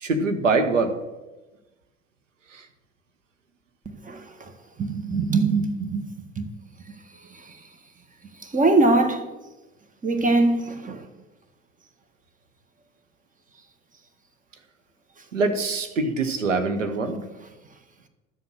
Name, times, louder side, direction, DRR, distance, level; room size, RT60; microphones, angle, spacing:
voice 1, 0.0-1.0 2.5-2.6 15.3-17.2, right 3 dB, 85° right, 1.4 m, -24 dB
voice 2, 4.0-4.5 4.8-6.5 7.3-7.5 8.4-9.2 10.0-11.0, right 3 dB, 20° right, 1.7 m, -22 dB
12.5 x 7.6 x 6.4 m
hypercardioid pair, 75°, 37 cm